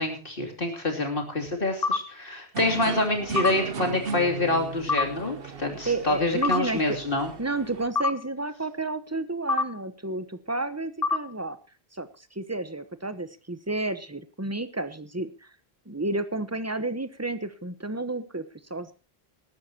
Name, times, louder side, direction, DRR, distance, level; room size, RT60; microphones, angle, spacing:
voice 1, 0.0-7.3, left 2 dB, 60° left, 3 dB, 3.1 m, -27 dB
sound 1, 1.8-2.0 3.4-3.5 4.9-5.1 6.4-6.6 8.0-8.1 9.5-9.7 11.0-11.2, left 4 dB, 40° left, 1.2 m, -24 dB
sound 2, 2.5-7.9, right 5 dB, 65° right, 1.1 m, -36 dB
voice 2, 5.9-7.0 7.4-11.6 11.9-15.5 15.9-18.4 18.7-18.9, right 2 dB, 15° right, 12 dB, 1.1 m, -31 dB
19.5 x 12.5 x 2.9 m, 0.33 s
omnidirectional pair, 1.1 m